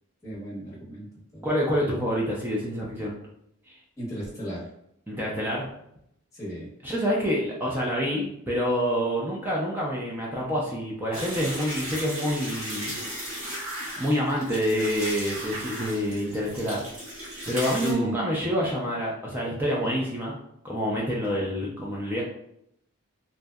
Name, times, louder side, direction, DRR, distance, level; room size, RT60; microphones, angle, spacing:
voice 1, 0.2-1.1 1.3-1.5 4.0-4.7 6.3-6.7 17.8-18.2 19.8-19.9, equal, 15° left, -6 dB, 0.8 m, -33 dB
voice 2, 1.4-3.1 3.7-3.8 5.1-5.7 6.8-13.0 14.0-16.9 17.5-20.3 20.6-22.2, equal, 10° right, -4 dB, 0.3 m, -27 dB
sound 1, 11.1-17.9, equal, 80° right, 1.2 m, -36 dB
2.6 x 2.1 x 2.2 m, 0.75 s
head